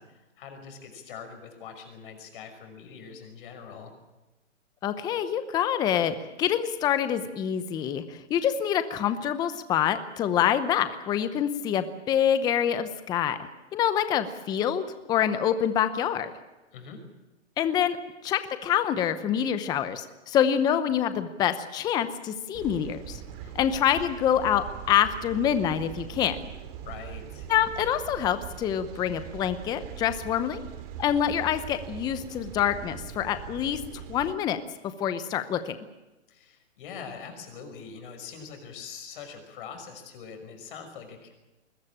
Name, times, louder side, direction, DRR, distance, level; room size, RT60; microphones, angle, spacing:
voice 1, 0.0-3.9 16.7-17.0 23.5-23.9 26.8-27.5 36.3-41.3, left 6 dB, 45° left, 6 dB, 5.9 m, -43 dB
voice 2, 4.8-14.8 15.1-16.3 17.6-18.0 18.2-23.2 23.5-26.4 27.5-30.6 31.0-33.8 34.1-34.6 35.0-35.8, left 9 dB, 10° left, 12 dB, 0.7 m, -26 dB
sound 1, 22.5-34.3, right 9 dB, 30° right, 2.4 m, -41 dB
21.5 x 20.5 x 8.7 m, 1.0 s
hypercardioid pair, 150°, 36 cm